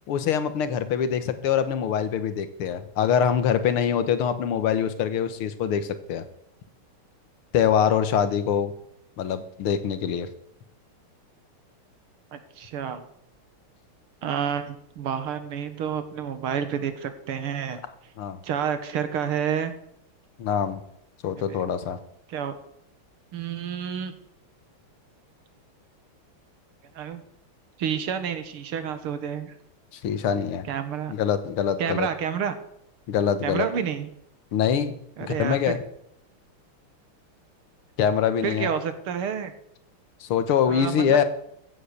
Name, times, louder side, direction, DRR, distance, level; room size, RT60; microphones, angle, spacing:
voice 1, 0.1-6.2 7.5-8.7 9.2-10.3 18.2-18.4 20.4-20.8 21.2-22.0 29.9-30.7 31.1-32.1 33.1-33.7 34.5-35.8 38.0-38.7 40.2-41.2, left 8 dB, 85° left, 11 dB, 2.0 m, -24 dB
voice 2, 12.3-13.0 14.2-17.8 18.4-19.7 21.5-21.6 22.3-22.5 23.3-24.1 27.0-27.2 27.8-29.5 30.7-31.1 31.8-32.6 33.4-34.1 35.2-35.8 38.4-39.5 40.7-41.2, right 8 dB, 90° right, 10 dB, 2.2 m, -29 dB
15.0 x 7.9 x 6.6 m, 0.75 s
omnidirectional pair, 2.3 m